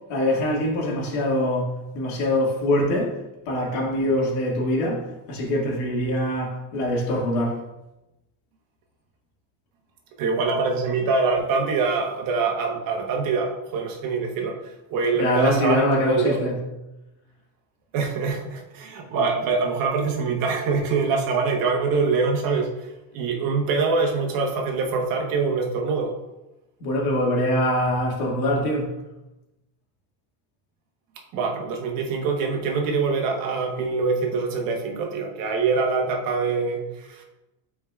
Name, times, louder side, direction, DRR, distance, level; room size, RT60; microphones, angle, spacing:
voice 1, 0.1-3.2 3.5-7.6 15.1-16.6 26.8-29.0, left 1 dB, 70° left, -2 dB, 2.1 m, -23 dB
voice 2, 10.2-14.6 14.9-16.4 17.9-22.7 23.1-26.1 31.3-37.2, right 4 dB, 50° right, 2 dB, 1.1 m, -24 dB
8.9 x 4.7 x 2.4 m, 0.96 s
cardioid pair, 150°, 44 cm